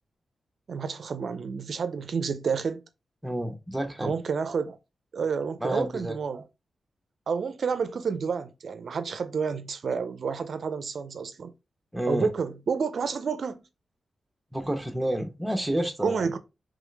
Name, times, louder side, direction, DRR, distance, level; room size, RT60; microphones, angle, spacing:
voice 1, 0.7-2.8 4.0-4.8 5.1-6.5 7.3-11.5 12.1-13.6 16.0-16.4, right 5 dB, 65° right, 0.5 m, -29 dB
voice 2, 3.2-4.1 5.6-6.1 11.9-12.3 14.5-16.3, right 1 dB, 10° right, 0.9 m, -29 dB
3.6 x 3.2 x 3.4 m
wide cardioid pair, 105°, 0 cm